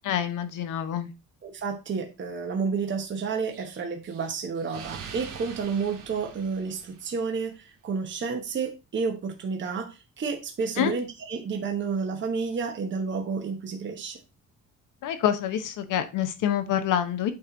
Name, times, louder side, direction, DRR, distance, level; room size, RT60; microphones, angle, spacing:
voice 1, 0.0-1.1 10.8-10.9 15.0-17.3, left 10 dB, 75° left, 8 dB, 1.0 m, -26 dB
voice 2, 1.4-14.2, right 5 dB, 35° right, 3 dB, 1.1 m, -30 dB
Explosion, 3.5-7.4, right 6 dB, 85° right, 1.8 m, -44 dB
8.6 x 3.1 x 3.8 m, 0.28 s
cardioid pair, 130°, 31 cm